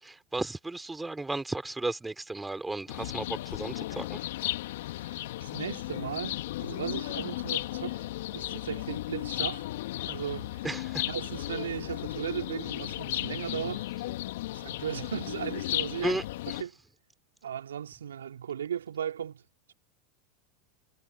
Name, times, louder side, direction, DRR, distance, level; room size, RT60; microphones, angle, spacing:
voice 1, 0.0-4.2 10.6-11.0 16.0-16.6, right 2 dB, 10° right, 4.4 m, -34 dB
sound 1, 2.9-16.6, left 16 dB, 70° left, 1.8 m, -35 dB
voice 2, 4.9-8.0 8.3-9.7 10.0-10.6 11.1-13.8 14.5-16.1 16.6-16.8 17.4-19.4, right 9 dB, 80° right, 4.0 m, -36 dB
hypercardioid pair, 90°, 0 cm